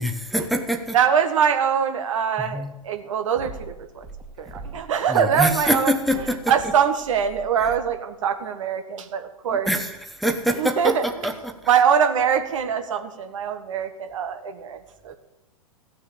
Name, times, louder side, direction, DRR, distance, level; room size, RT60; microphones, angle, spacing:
voice 1, 0.0-1.0 2.4-2.7 5.1-6.5 7.6-7.7 9.5-11.6, equal, ahead, 4 dB, 1.1 m, -25 dB
voice 2, 0.9-4.0 4.4-5.9 6.5-9.7 10.6-11.1 11.7-14.8 15.0-15.1, right 7 dB, 60° right, 7 dB, 1.5 m, -23 dB
sound 1, 3.3-4.9 5.3-8.0, right 4 dB, 20° right, 2.1 m, -41 dB
15.5 x 6.6 x 8.5 m, 0.98 s
figure-of-eight pair, 100°, 18 cm